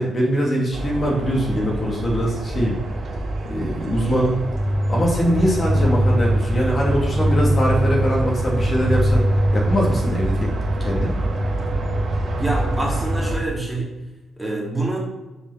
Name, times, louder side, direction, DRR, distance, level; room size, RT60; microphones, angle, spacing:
voice 1, 0.0-2.8 3.4-4.4 4.9-9.2 9.5-10.5 10.8-11.1, equal, 35° left, -3 dB, 2.6 m, -22 dB
sound 1, 0.7-13.4, right 1 dB, 45° right, 2.6 m, -23 dB
voice 2, 12.4-14.0 14.4-15.0, right 2 dB, 5° right, -3 dB, 2.6 m, -26 dB
6.8 x 5.5 x 5.8 m, 1.1 s
cardioid pair, 90°, 0 cm